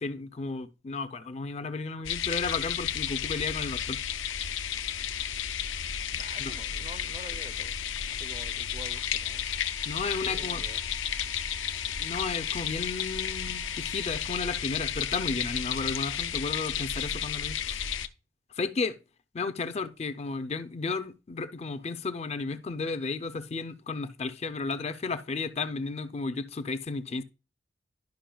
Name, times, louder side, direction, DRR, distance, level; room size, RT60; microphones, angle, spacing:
voice 1, 0.0-4.0 6.4-6.5 9.9-10.6 12.0-17.8 18.5-19.0 19.3-27.2, left 4 dB, 35° left, 0.4 m, -33 dB
sound 1, 2.0-18.1, left 9 dB, 90° left, 0.6 m, -32 dB
voice 2, 6.2-7.8 8.1-9.5 9.9-10.9, right 2 dB, 30° right, 0.4 m, -47 dB
Bowed string instrument, 8.8-14.1, right 3 dB, 85° right, 2.8 m, -51 dB
11.5 x 5.4 x 2.2 m
head